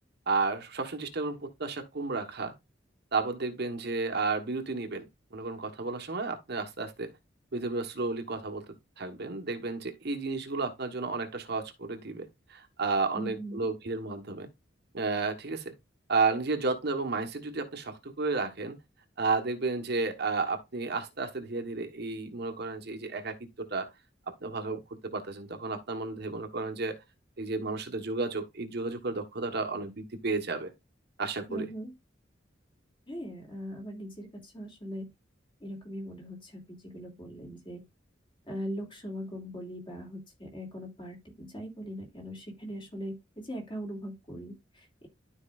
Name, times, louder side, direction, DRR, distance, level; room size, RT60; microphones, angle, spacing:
voice 1, 0.3-2.5 3.1-7.1 7.5-14.5 14.9-15.7 16.1-18.8 19.2-23.9 24.3-27.0 27.4-30.7 31.2-31.7, right 3 dB, 60° right, 1.3 m, -32 dB
voice 2, 13.1-13.6 31.5-31.9 33.1-35.1 35.6-37.8 38.5-45.1, equal, 25° left, 2.8 m, -40 dB
12.0 x 4.8 x 2.4 m
head